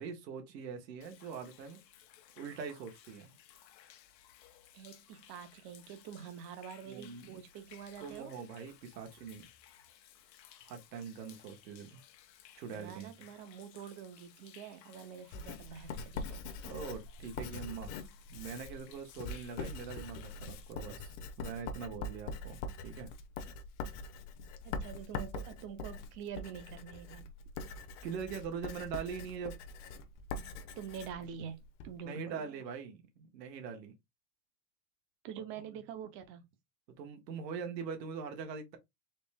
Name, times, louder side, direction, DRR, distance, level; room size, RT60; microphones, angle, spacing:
voice 1, 0.0-1.8 2.4-3.4 6.9-7.4 8.0-9.5 10.6-12.0 12.6-13.1 16.6-17.9 18.3-23.1 27.7-29.6 32.0-33.9 35.6-35.8 36.9-38.8, right 6 dB, 80° right, 1.6 m, -43 dB
Human voice / Rain / Stream, 1.0-20.7, left 11 dB, 90° left, 1.1 m, -59 dB
voice 2, 4.7-8.3 12.7-16.4 24.6-27.3 30.8-32.6 35.2-36.4, right 8 dB, 25° right, 0.6 m, -46 dB
Writing, 15.3-31.9, left 3 dB, 45° left, 0.8 m, -43 dB
4.2 x 3.1 x 3.4 m
supercardioid pair, 165°, 49 cm